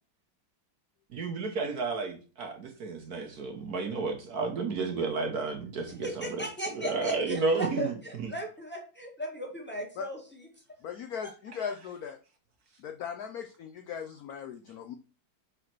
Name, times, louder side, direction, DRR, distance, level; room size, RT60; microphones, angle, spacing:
voice 1, 1.1-6.4 6.7-8.3 11.5-11.7, right 4 dB, 55° right, 4 dB, 1.4 m, -32 dB
voice 2, 6.0-10.5 11.2-11.3, equal, 5° left, -1 dB, 2.0 m, -37 dB
voice 3, 10.8-12.2 12.8-14.9, left 7 dB, 65° left, 6 dB, 0.9 m, -38 dB
5.1 x 4.9 x 5.9 m, 0.36 s
omnidirectional pair, 2.1 m